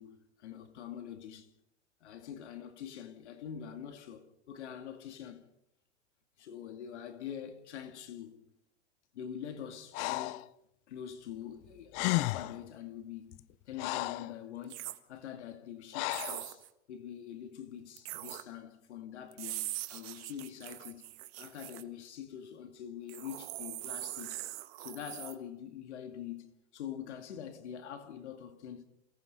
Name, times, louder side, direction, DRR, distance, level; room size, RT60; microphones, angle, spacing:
voice 1, 0.0-1.5 2.0-5.4 6.4-8.4 9.1-10.5 10.9-13.4 13.7-24.5 24.8-28.8, left 9 dB, 80° left, 2.4 m, -45 dB
Breathing, 9.9-10.5 11.6-11.7 11.9-12.6 13.3-14.3 15.9-16.4, left 20 dB, 50° left, 0.8 m, -33 dB
sound 1, 14.6-15.0 16.1-16.7 18.0-18.4 19.3-21.8 23.1-25.3, right 17 dB, 60° right, 1.8 m, -42 dB
28.5 x 18.0 x 5.4 m
hypercardioid pair, 110°, 34 cm